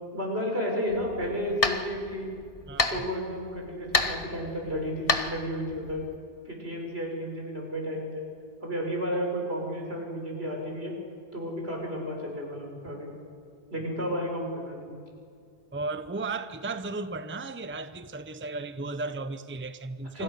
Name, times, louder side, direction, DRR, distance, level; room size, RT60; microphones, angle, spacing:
voice 1, 0.1-2.3 2.9-6.0 6.4-8.2 8.6-10.9 11.3-13.1 13.7-14.9 20.1-20.2, equal, 80° right, 6.7 m, -32 dB
sound 1, 0.9-6.2, left 3 dB, 35° left, 1.4 m, -31 dB
voice 2, 2.7-3.0 15.7-20.2, right 3 dB, 15° right, 0.8 m, -35 dB
28.0 x 26.0 x 6.7 m
omnidirectional pair, 1.0 m